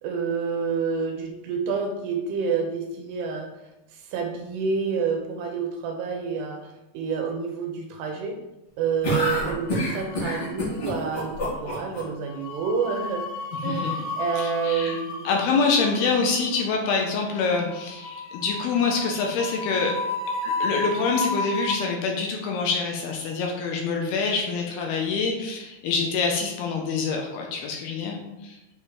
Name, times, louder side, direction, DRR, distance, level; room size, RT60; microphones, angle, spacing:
voice 1, 0.0-3.5 3.9-8.4 8.8-13.3 13.6-15.3 15.7-15.8, right 5 dB, 80° right, 3 dB, 2.8 m, -28 dB
sound 1, 9.0-12.0, equal, 40° left, 3.2 m, -27 dB
sound 2, 9.7-10.5 10.8-11.1 12.2-21.8, left 2 dB, 90° left, 1.9 m, -33 dB
voice 2, 14.4-15.0 15.3-19.9 20.4-28.2 28.4-28.6, left 4 dB, 75° left, 1 dB, 2.6 m, -26 dB
8.3 x 5.0 x 3.6 m, 0.97 s
omnidirectional pair, 5.1 m